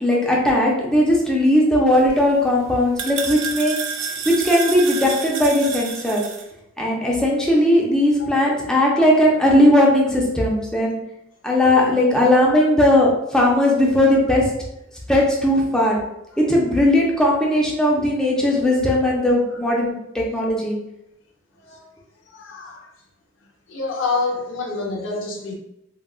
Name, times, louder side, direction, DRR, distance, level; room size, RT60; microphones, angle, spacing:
voice 1, 0.0-3.8 4.3-6.2 6.8-11.0 11.4-14.5 15.1-16.0 16.5-20.8, left 1 dB, 5° left, -3 dB, 0.5 m, -18 dB
sound 1, 1.9-6.4, right 6 dB, 70° right, 0.4 m, -30 dB
voice 2, 22.3-22.8 23.7-25.5, left 3 dB, 75° left, 0 dB, 0.6 m, -27 dB
3.6 x 2.3 x 2.3 m, 0.82 s
head